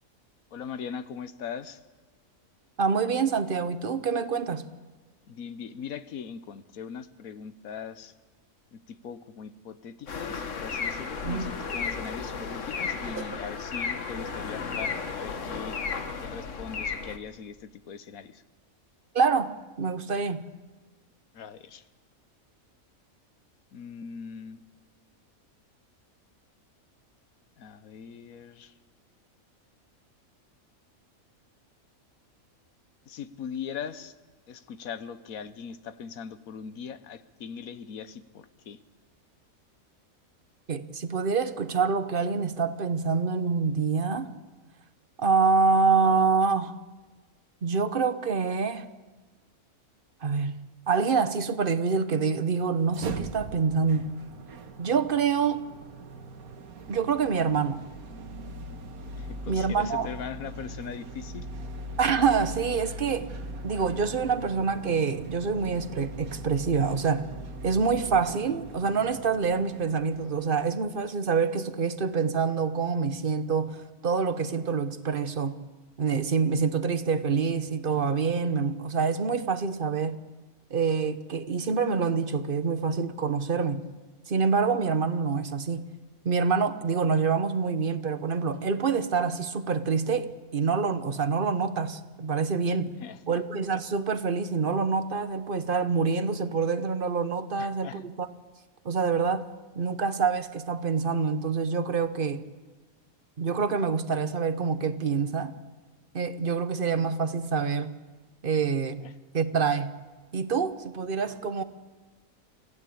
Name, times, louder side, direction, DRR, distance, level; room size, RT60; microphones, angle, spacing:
voice 1, 0.5-1.8 5.3-8.1 8.7-15.8 16.2-18.4 21.3-21.8 23.7-24.6 27.6-28.7 33.1-34.1 34.5-38.8 59.1-61.5 92.8-93.4 97.6-98.0 108.5-108.7 109.0-109.1, left 7 dB, 80° left, 1.4 m, -40 dB
voice 2, 2.8-4.6 11.2-11.5 13.2-13.3 19.1-20.4 40.7-44.3 45.2-46.8 47.6-48.9 50.2-50.6 50.9-54.1 54.8-55.6 56.9-57.8 59.5-60.1 62.0-63.3 63.6-67.3 67.6-75.6 76.0-80.2 80.7-83.9 84.3-85.8 86.2-93.0 93.3-98.3 98.8-99.5 99.7-102.4 103.4-105.5 106.1-107.9 108.4-109.1 109.3-110.0 110.3-111.6, right 5 dB, 40° right, 1.1 m, -26 dB
sound 1, 10.1-17.2, left 5 dB, 60° left, 1.7 m, -34 dB
sound 2, 52.8-70.9, right 1 dB, 85° right, 1.8 m, -40 dB
25.0 x 15.5 x 8.6 m
omnidirectional pair, 1.5 m